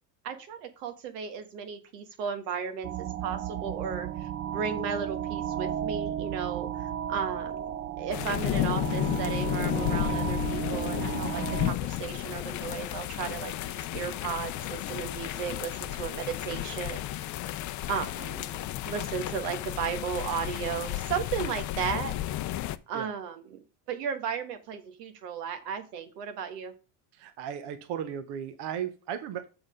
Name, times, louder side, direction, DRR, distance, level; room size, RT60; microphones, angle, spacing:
voice 1, 0.2-2.9 3.2-7.7 8.0-17.0 17.9-22.2 22.9-23.6 23.9-26.7, right 7 dB, 85° right, 8 dB, 1.5 m, -35 dB
sound 1, 2.8-11.7, right 10 dB, 30° right, 0.4 m, -34 dB
sound 2, 8.1-22.8, left 14 dB, 40° left, 0.5 m, -33 dB
voice 2, 27.1-29.5, right 9 dB, 60° right, 9 dB, 1.1 m, -36 dB
6.4 x 5.9 x 5.0 m, 0.33 s
supercardioid pair, 110°, 47 cm